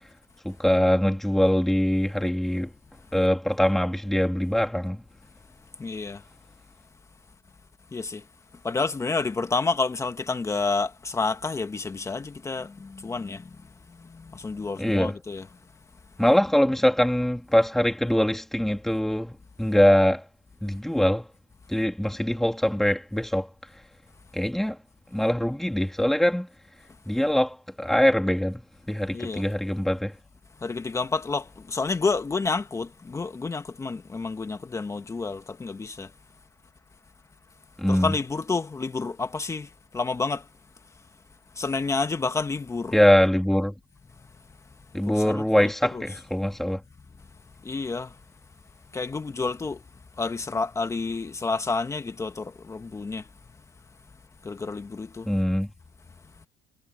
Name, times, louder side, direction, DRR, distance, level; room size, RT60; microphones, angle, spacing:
voice 1, 0.4-2.7 3.1-5.0 14.8-15.2 16.2-20.2 20.6-21.3 21.7-23.5 24.3-24.8 25.1-26.5 27.1-28.6 28.9-30.1 37.8-38.1 42.9-43.7 44.9-46.8 55.3-55.7, equal, ahead, 3.2 m, -23 dB
voice 2, 5.8-6.2 7.9-8.2 8.6-13.5 13.9-15.5 29.1-29.4 30.6-36.1 37.9-40.5 41.5-42.9 45.0-45.4 45.9-46.0 47.6-48.2 48.9-49.8 50.2-53.3 54.4-55.3, left 4 dB, 20° left, 1.5 m, -29 dB
supercardioid pair, 95°, 14 cm